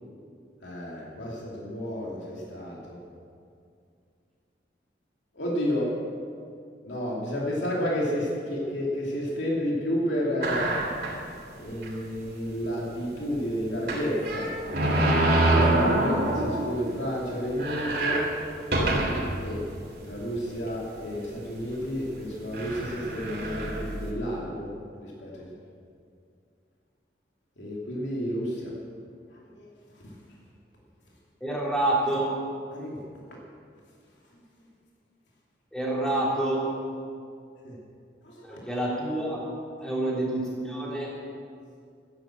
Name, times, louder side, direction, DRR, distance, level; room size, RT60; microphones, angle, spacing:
voice 1, 0.6-3.0 5.3-5.9 6.8-10.8 11.6-14.5 15.1-18.3 19.4-19.6 20.0-24.7 25.0-25.5 27.6-28.7 29.5-29.7 30.0-30.1 32.7-33.0 34.3-34.4 37.6-37.8 38.2-38.6 39.8-40.0, equal, 80° left, -4 dB, 2.8 m, -31 dB
sound 1, 10.4-11.3 11.8-11.9 12.2-12.3 13.8-16.8 17.1-17.2 17.5-19.4 20.0-20.1 21.0-21.2 22.1-22.2 22.5-24.1, right 1 dB, 55° right, 3.4 m, -25 dB
voice 2, 31.4-32.3 35.7-36.7 38.4-39.4 39.8-41.1, right 1 dB, 5° left, -5 dB, 3.3 m, -27 dB
14.0 x 10.5 x 7.7 m, 2.3 s
head